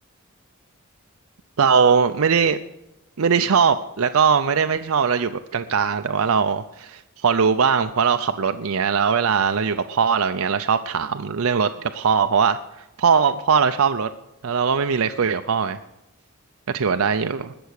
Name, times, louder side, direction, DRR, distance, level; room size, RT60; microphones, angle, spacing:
voice 1, 1.6-2.6 3.2-12.6 13.0-14.1 14.4-15.8 16.7-17.5, right 6 dB, 85° right, 8 dB, 0.6 m, -20 dB
20.5 x 6.9 x 6.5 m, 0.93 s
head